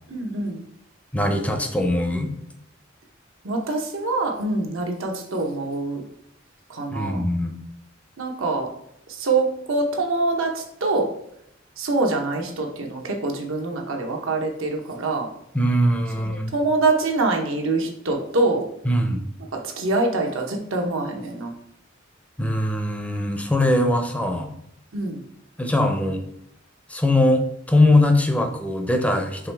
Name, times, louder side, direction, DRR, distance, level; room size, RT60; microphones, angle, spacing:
voice 1, 0.1-0.6 3.4-6.0 6.7-7.3 8.2-8.7 9.1-11.1 11.8-15.3 16.2-18.7 19.5-21.5 24.9-25.2, right 3 dB, 90° right, 2 dB, 0.9 m, -25 dB
voice 2, 1.1-2.3 6.9-7.6 15.5-16.5 18.8-19.3 22.4-24.5 25.6-26.2 26.9-29.5, left 1 dB, 5° left, 4 dB, 0.4 m, -21 dB
4.8 x 3.1 x 3.3 m, 0.76 s
head